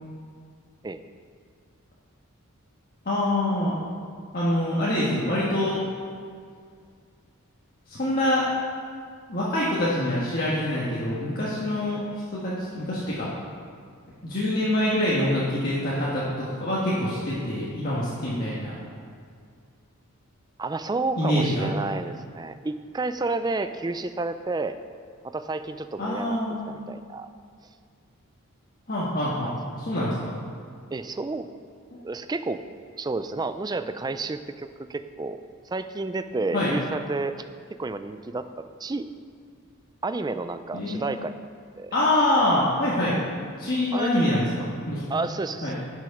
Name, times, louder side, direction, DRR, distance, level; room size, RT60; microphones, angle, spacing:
voice 1, 3.0-3.7 4.3-5.8 7.9-8.4 9.3-12.0 12.3-13.3 14.2-18.7 21.2-21.7 26.0-26.7 28.9-30.3 36.5-36.7 40.7-41.1 41.9-43.2 43.6-44.4 44.9-45.0 45.6-45.7, left 1 dB, 40° left, -7 dB, 1.5 m, -25 dB
voice 2, 20.6-24.8 25.2-26.4 26.7-27.3 29.4-29.5 30.9-31.5 32.0-32.6 33.0-35.4 35.7-37.5 37.8-39.1 40.0-41.4 41.8-41.9 43.9-44.2 45.1-45.7, right 3 dB, 20° right, 11 dB, 0.3 m, -30 dB
11.5 x 6.2 x 5.9 m, 2.2 s
head